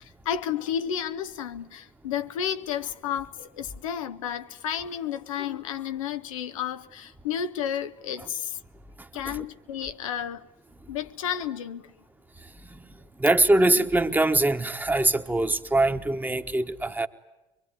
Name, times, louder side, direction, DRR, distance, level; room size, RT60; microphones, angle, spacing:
voice 1, 0.0-8.6 9.1-10.5 10.9-11.9, left 9 dB, 85° left, 0.9 m, -32 dB
voice 2, 13.2-17.1, right 2 dB, 10° right, 1.3 m, -23 dB
23.5 x 23.0 x 9.8 m
hypercardioid pair, 75°, 17 cm